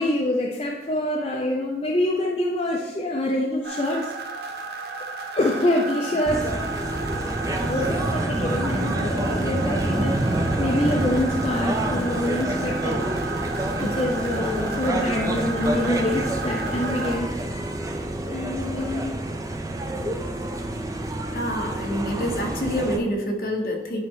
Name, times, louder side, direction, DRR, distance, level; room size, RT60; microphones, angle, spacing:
voice 1, 0.0-4.1 4.4-4.6 5.3-6.6 7.6-13.1 13.8-17.3 18.2-19.2, left 1 dB, 30° left, -2 dB, 0.6 m, -26 dB
sound 1, 3.6-17.2, right 3 dB, 60° right, 0.8 m, -33 dB
sound 2, 6.2-23.0, right 1 dB, 20° right, 0.5 m, -27 dB
voice 2, 21.3-24.0, equal, 50° left, 1 dB, 1.1 m, -27 dB
9.8 x 4.3 x 3.7 m, 1.1 s
head